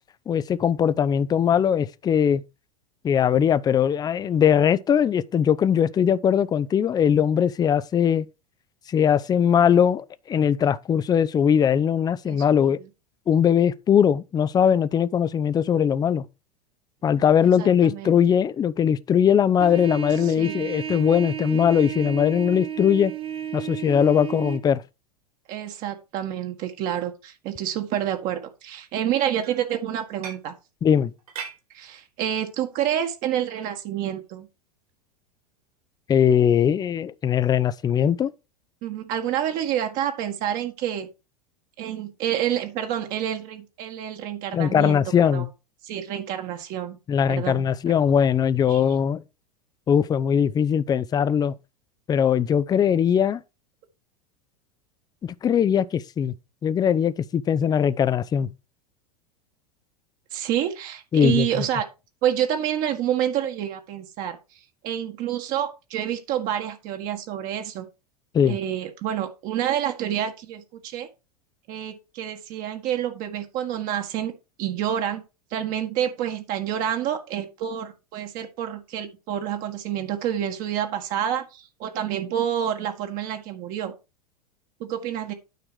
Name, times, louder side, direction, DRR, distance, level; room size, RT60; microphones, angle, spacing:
voice 1, 0.3-2.4 3.0-8.3 8.9-12.8 13.3-16.2 17.0-23.1 23.5-24.8 30.8-31.1 36.1-38.3 44.5-45.5 47.1-49.2 49.9-51.5 52.1-53.4 55.2-56.3 56.6-58.5 61.1-61.5 68.3-68.6, left 8 dB, 20° left, 0.6 m, -20 dB
voice 2, 12.2-12.8 17.6-18.2 20.2-20.7 25.5-30.5 31.7-34.5 38.8-41.1 41.8-45.0 45.3-45.5 45.8-47.0 47.3-47.9 48.7-48.8 60.3-61.9 62.2-67.9 68.5-71.1 71.7-74.3 74.6-75.2 75.5-83.9 84.8-85.3, right 10 dB, 45° right, 1.7 m, -28 dB
Trumpet, 19.6-24.6, right 10 dB, 25° right, 0.9 m, -33 dB
sound 1, 29.2-30.6 31.0-31.6 32.4-32.6 33.4-33.7 34.2-34.4 34.9-35.0 36.3-36.4 37.1-37.3, right 6 dB, 65° right, 4.1 m, -40 dB
9.3 x 6.0 x 4.7 m
figure-of-eight pair, 90°, 20 cm